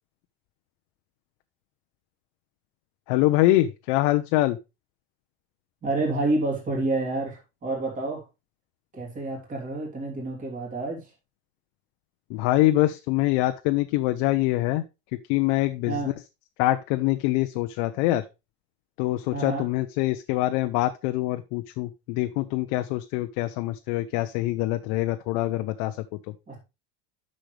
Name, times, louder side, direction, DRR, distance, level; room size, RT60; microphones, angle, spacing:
voice 1, 3.1-4.6 12.3-14.8 15.3-15.9 16.6-18.2 19.0-26.0, left 16 dB, 60° left, 0.7 m, -24 dB
voice 2, 5.8-8.2 8.9-11.1 15.9-16.1 19.3-19.7 26.5-26.6, right 2 dB, 25° right, 3.2 m, -29 dB
10.0 x 6.4 x 3.2 m
cardioid pair, 160°, 32 cm